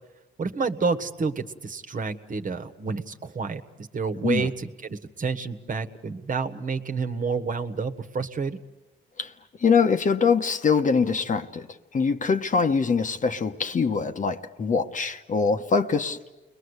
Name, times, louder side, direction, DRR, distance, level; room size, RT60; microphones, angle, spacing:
voice 1, 0.4-8.6, right 4 dB, 40° right, 8 dB, 1.5 m, -29 dB
voice 2, 9.6-11.7 11.9-16.2, left 5 dB, 40° left, 7 dB, 1.3 m, -23 dB
30.0 x 22.0 x 8.2 m, 1.1 s
cardioid pair, 90°, 20 cm